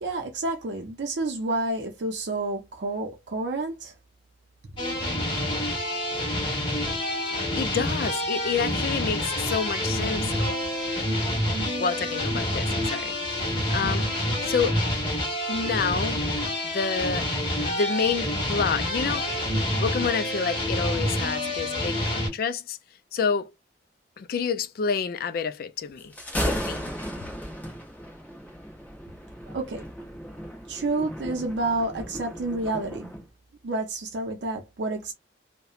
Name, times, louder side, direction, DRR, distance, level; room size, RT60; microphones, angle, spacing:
voice 1, 0.0-3.9 29.5-29.8 30.7-33.1 33.6-35.1, right 2 dB, 70° right, 0.5 m, -29 dB
sound 1, 4.8-22.3, left 1 dB, 30° left, 1.2 m, -27 dB
voice 2, 7.5-10.6 11.8-14.1 14.5-14.8 15.5-16.3 16.6-17.3 17.7-19.4 19.8-22.8 23.1-23.5 24.2-26.1 26.4-26.9, left 6 dB, 55° left, 0.3 m, -28 dB
Thunder, 26.0-33.2, equal, 10° left, 0.8 m, -35 dB
2.8 x 2.1 x 2.4 m
head